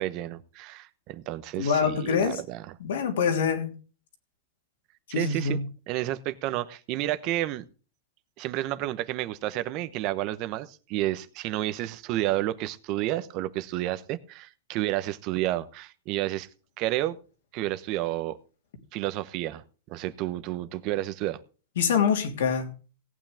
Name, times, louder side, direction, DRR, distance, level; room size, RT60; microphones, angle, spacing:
voice 1, 0.0-2.7 5.1-5.6 5.9-7.6 8.4-16.5 16.8-17.2 17.5-18.4 18.9-21.4, right 15 dB, 40° right, 1.0 m, -31 dB
voice 2, 1.6-2.4 2.8-3.7 5.1-5.7 21.8-22.7, left 6 dB, 80° left, 3.0 m, -25 dB
17.5 x 8.9 x 3.5 m
supercardioid pair, 145°, 0 cm